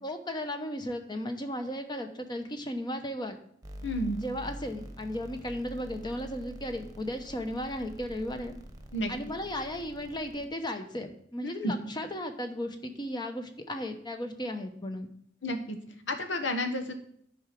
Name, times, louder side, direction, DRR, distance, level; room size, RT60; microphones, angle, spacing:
voice 1, 0.0-3.4 4.2-8.5 9.1-15.1, left 1 dB, 25° left, 7 dB, 0.9 m, -35 dB
sound 1, 3.6-10.5, equal, 20° right, 1.0 m, -46 dB
voice 2, 3.8-4.2 8.9-9.1 11.4-11.7 15.4-15.8 16.1-16.9, left 1 dB, 90° left, 6 dB, 1.3 m, -31 dB
10.0 x 4.9 x 5.9 m, 0.67 s
head